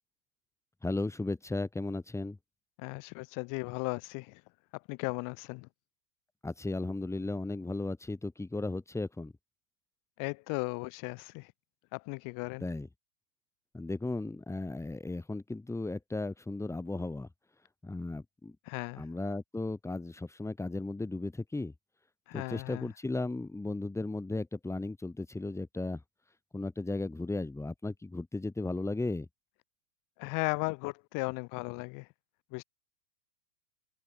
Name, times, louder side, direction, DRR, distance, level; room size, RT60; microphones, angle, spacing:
voice 1, 0.8-2.4 6.4-9.3 12.6-12.9 13.7-17.3 17.8-18.6 19.0-21.7 22.3-26.0 26.5-29.3, left 2 dB, 5° left, 3.6 m, -35 dB
voice 2, 2.8-4.4 4.9-5.7 10.2-11.5 11.9-12.7 18.7-19.1 22.3-22.9 30.2-32.1 32.5-32.6, left 30 dB, 40° left, 2.6 m, -36 dB
figure-of-eight pair, 105°, 48 cm